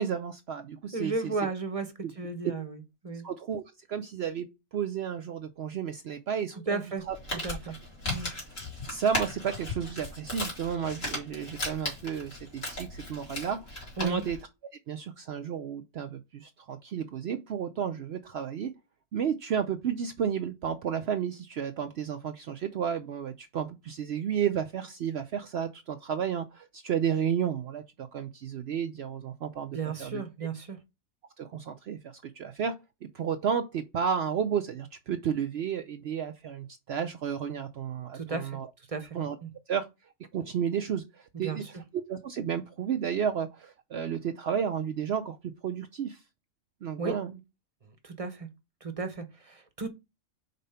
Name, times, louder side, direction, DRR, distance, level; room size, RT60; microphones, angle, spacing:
voice 1, 0.0-1.3 3.2-3.6 3.9-4.5 4.7-6.8 7.1-7.2 8.9-13.6 14.0-14.4 14.9-18.7 19.1-30.2 31.4-32.7 33.0-38.7 39.1-39.4 39.7-39.9 40.3-41.6 41.9-45.4 45.6-46.2 46.8-47.4, right 8 dB, 60° right, 0.7 m, -32 dB
voice 2, 0.9-3.3 6.7-7.0 7.3-7.8 8.0-8.3 14.0-14.2 29.7-30.8 38.1-38.6 38.9-39.5 41.4-41.7 47.0-47.2 47.9-48.5 48.8-49.9, right 3 dB, 30° right, 0.8 m, -34 dB
Crumpling crinkling, 7.0-14.4, left 1 dB, 65° left, 3.1 m, -37 dB
5.3 x 4.1 x 5.5 m
omnidirectional pair, 1.4 m